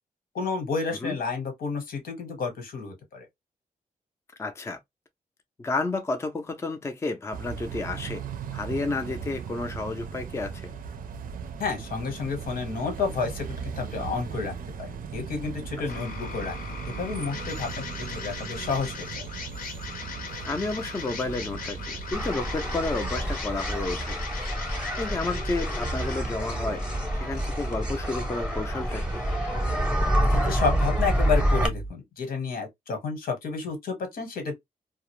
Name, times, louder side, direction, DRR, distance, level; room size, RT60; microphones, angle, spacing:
voice 1, 0.3-3.3 11.6-16.6 16.8-19.3 30.3-34.5, left 5 dB, 90° left, 1.1 m, -31 dB
voice 2, 4.4-4.8 5.6-8.2 8.5-10.7 20.4-24.2 25.0-26.9 27.1-29.2, left 3 dB, 20° left, 0.4 m, -31 dB
sound 1, 7.3-23.4, right 6 dB, 70° right, 0.5 m, -38 dB
sound 2, 15.9-31.9, left 2 dB, 75° left, 0.7 m, -39 dB
sound 3, 22.1-31.7, equal, 5° right, 0.7 m, -27 dB
2.4 x 2.0 x 2.9 m
wide cardioid pair, 140°, 15 cm